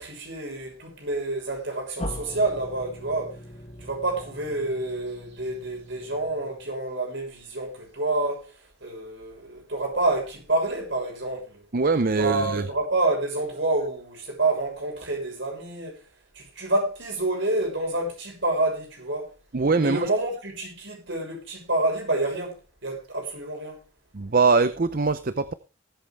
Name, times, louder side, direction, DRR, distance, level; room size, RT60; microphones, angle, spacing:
voice 1, 0.0-3.4 3.8-8.5 8.8-11.6 12.1-16.0 16.3-19.3 19.8-23.8, right 2 dB, 60° right, 6.6 m, -28 dB
sound 1, 2.0-6.8, left 1 dB, 30° left, 1.5 m, -40 dB
voice 2, 11.7-12.6 19.5-20.1 24.1-25.5, right 4 dB, 45° right, 0.6 m, -22 dB
19.5 x 8.5 x 3.4 m
head